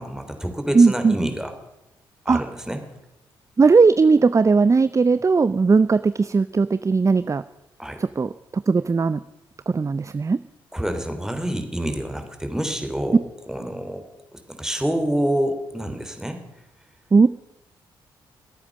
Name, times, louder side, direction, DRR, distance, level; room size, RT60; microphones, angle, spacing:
voice 1, 0.0-1.5 2.2-2.8 7.8-8.0 10.7-14.1 14.5-16.4, right 1 dB, 5° right, 5 dB, 3.3 m, -27 dB
voice 2, 0.7-1.2 2.3-2.4 3.6-7.4 8.0-9.2 9.7-10.4 17.1-17.3, right 4 dB, 25° right, 15 dB, 0.5 m, -18 dB
23.0 x 8.7 x 6.5 m, 0.90 s
hypercardioid pair, 40°, 12 cm